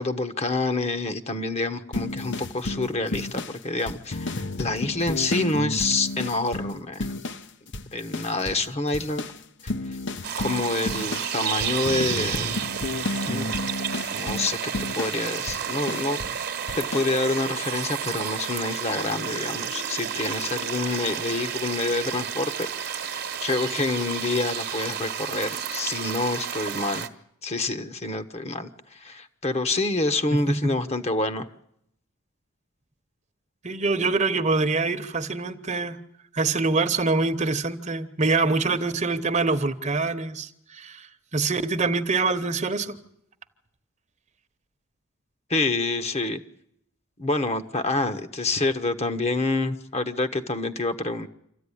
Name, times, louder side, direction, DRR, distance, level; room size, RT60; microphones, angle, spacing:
voice 1, 0.0-7.1 7.9-9.2 9.9-10.0 10.4-12.6 13.3-13.5 14.1-27.1 27.4-31.5 45.5-46.4 47.2-51.3, left 2 dB, 30° left, 9 dB, 1.2 m, -27 dB
sound 1, 1.9-7.5 7.7-8.7 8.9-16.4 16.7-17.1, left 2 dB, 60° left, 1.0 m, -32 dB
sound 2, 10.2-27.1, right 8 dB, 50° right, 1.3 m, -31 dB
voice 2, 30.3-30.7 33.6-36.0 36.3-41.1 41.3-43.0, right 3 dB, 35° right, 11 dB, 1.1 m, -25 dB
26.0 x 14.0 x 10.0 m, 0.77 s
head